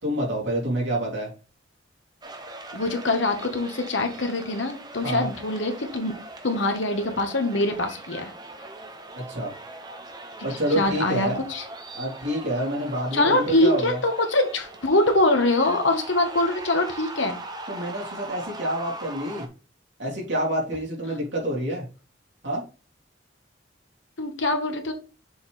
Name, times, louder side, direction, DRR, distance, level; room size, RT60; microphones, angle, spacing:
voice 1, 0.0-1.3 5.0-5.3 9.1-9.5 10.4-11.4 11.9-14.0 17.7-19.5 20.0-21.9 22.4-22.6, right 1 dB, 70° right, -4 dB, 3.6 m, -27 dB
football score, 2.2-19.5, right 2 dB, 20° right, 0.6 m, -40 dB
voice 2, 2.7-6.1 6.4-8.3 10.4-10.5 10.7-11.6 13.1-17.4 24.2-24.9, left 2 dB, 75° left, 5 dB, 1.3 m, -24 dB
6.9 x 4.2 x 3.4 m, 0.34 s
head